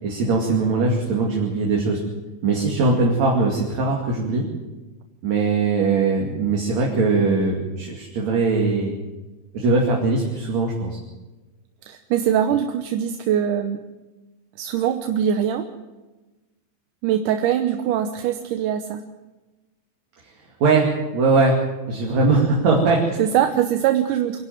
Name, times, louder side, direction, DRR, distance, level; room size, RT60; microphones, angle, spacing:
voice 1, 0.0-2.0 2.4-4.5 5.2-8.9 9.5-11.0 20.6-21.6 21.9-23.2, right 3 dB, 50° right, -1 dB, 3.6 m, -20 dB
voice 2, 11.9-13.8 14.6-15.6 17.0-19.0 23.2-24.5, right 9 dB, 70° right, 7 dB, 2.3 m, -22 dB
25.5 x 11.5 x 9.3 m, 1.2 s
omnidirectional pair, 4.2 m